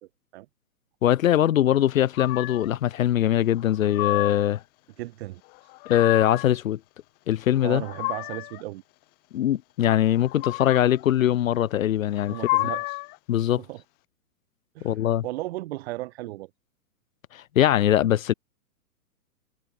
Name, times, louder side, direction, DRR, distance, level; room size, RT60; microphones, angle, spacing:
voice 1, 1.0-4.6 5.9-6.8 7.3-7.8 9.3-12.4 13.3-13.6 14.8-15.2 17.3-18.3, left 11 dB, 55° left, 1.3 m, -22 dB
sound 1, 2.1-2.7 3.6-4.6 5.5-6.5 7.5-8.6 10.1-11.0 12.1-13.2, left 27 dB, 20° left, 1.0 m, -31 dB
voice 2, 5.0-5.4 7.6-8.8 12.3-13.0 13.6-13.8 14.7-15.0 15.2-16.5, right 18 dB, 40° right, 4.5 m, -35 dB
hypercardioid pair, 150°, 47 cm